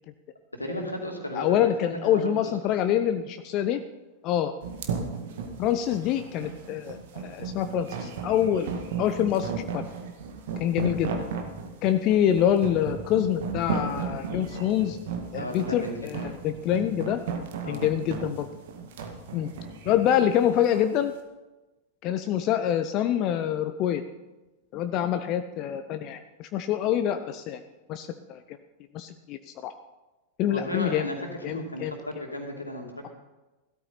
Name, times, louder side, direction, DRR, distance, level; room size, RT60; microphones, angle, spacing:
voice 1, 0.5-2.5 15.3-16.1 17.6-17.8 30.5-33.1, equal, 85° left, 2 dB, 2.7 m, -35 dB
voice 2, 1.3-3.8 4.2-4.5 5.6-8.7 9.0-9.8 10.6-11.1 11.8-15.0 15.3-17.2 17.7-18.5 19.3-19.5 19.8-21.1 22.0-24.0 24.7-27.6 27.9-28.6 28.9-29.7 30.4-31.1 31.4-31.9, left 10 dB, 40° left, 9 dB, 0.7 m, -26 dB
strange bass sound elastic, 4.6-20.9, right 6 dB, 55° right, 1.9 m, -35 dB
16.0 x 13.0 x 4.3 m, 1.1 s
figure-of-eight pair, 90°, 0 cm